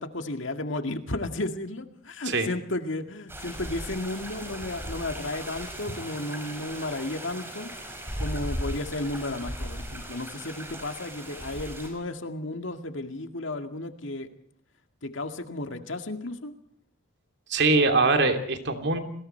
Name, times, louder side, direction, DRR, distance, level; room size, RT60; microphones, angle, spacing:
voice 1, 0.0-7.7 8.2-14.3 15.0-16.5, left 2 dB, 65° left, 7 dB, 2.1 m, -33 dB
sound 1, 3.3-11.9, equal, 10° right, 5.5 m, -37 dB
voice 2, 17.5-19.0, right 3 dB, 55° right, 6 dB, 3.0 m, -22 dB
29.5 x 21.0 x 4.6 m, 0.63 s
head